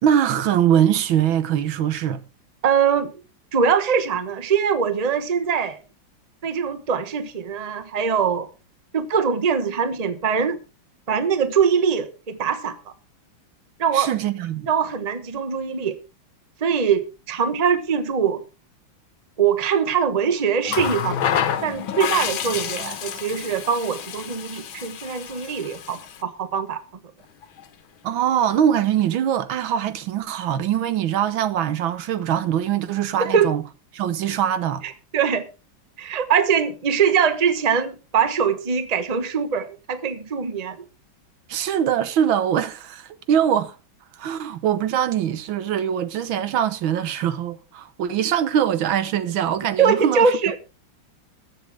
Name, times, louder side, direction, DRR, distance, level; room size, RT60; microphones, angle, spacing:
voice 1, 0.0-2.2 13.9-14.7 28.0-33.6 33.9-34.8 41.5-43.8 44.2-50.3, right 9 dB, 85° right, 1.7 m, -22 dB
voice 2, 2.6-3.1 3.5-5.8 6.4-8.5 8.9-10.6 11.1-12.8 13.8-14.1 14.7-16.0 16.6-18.4 19.4-26.8 33.2-33.5 34.8-35.4 36.0-40.8 49.8-50.5, right 6 dB, 25° right, 0.9 m, -22 dB
Water tap faucet, 20.7-26.2 27.4-27.6, left 9 dB, 85° left, 1.8 m, -28 dB
21.0 x 7.7 x 3.4 m
omnidirectional pair, 2.1 m